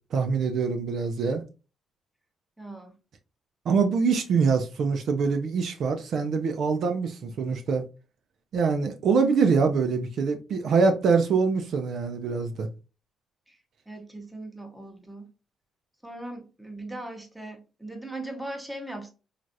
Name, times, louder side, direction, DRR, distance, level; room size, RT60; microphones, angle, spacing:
voice 1, 0.1-1.4 3.7-7.9 8.5-12.7, right 5 dB, 65° right, 0.5 m, -24 dB
voice 2, 2.6-2.9 13.5-13.6 13.9-15.3 16.0-19.1, right 1 dB, 5° right, 0.8 m, -39 dB
3.2 x 2.4 x 2.6 m
cardioid pair, 90°, 0 cm